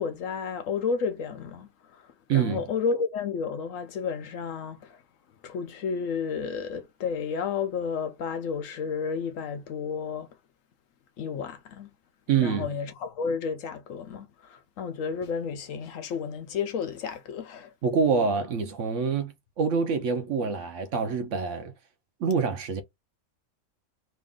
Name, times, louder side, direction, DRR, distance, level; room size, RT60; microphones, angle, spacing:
voice 1, 0.0-2.0 2.3-5.0 5.4-10.3 11.2-11.9 12.4-17.7, left 6 dB, 70° left, 0.9 m, -32 dB
voice 2, 2.3-2.6 12.3-12.7 17.8-21.7 22.2-22.8, right 6 dB, 65° right, 0.9 m, -26 dB
3.1 x 2.5 x 3.6 m
omnidirectional pair, 1.5 m